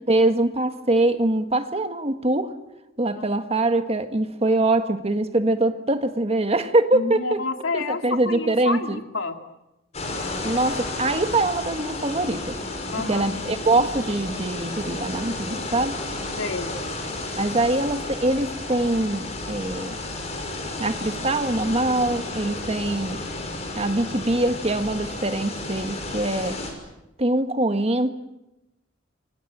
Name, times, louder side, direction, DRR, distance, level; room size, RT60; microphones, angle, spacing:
voice 1, 0.1-2.5 3.0-7.4 7.7-9.0 10.4-12.6 13.1-16.0 17.4-20.0 20.8-23.2 23.8-26.6 27.2-28.1, right 2 dB, 30° right, 8 dB, 1.7 m, -23 dB
voice 2, 6.9-8.0 8.3-9.4 12.9-13.3 16.4-16.9, left 3 dB, 90° left, 5 dB, 2.5 m, -29 dB
sound 1, 9.9-26.7, left 2 dB, 35° left, 5.8 m, -32 dB
28.5 x 24.0 x 7.5 m, 0.95 s
head